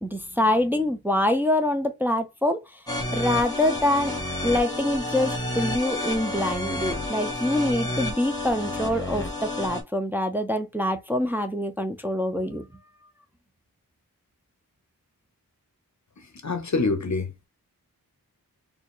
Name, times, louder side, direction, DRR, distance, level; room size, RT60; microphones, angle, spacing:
voice 1, 0.0-2.8 3.1-4.1 4.4-12.6, left 1 dB, 5° right, 0.6 m, -25 dB
sound 1, 2.9-9.8, left 1 dB, 10° left, 1.4 m, -30 dB
voice 2, 16.2-17.3, left 3 dB, 55° left, 0.7 m, -26 dB
4.1 x 2.5 x 3.1 m
wide cardioid pair, 80°, 35 cm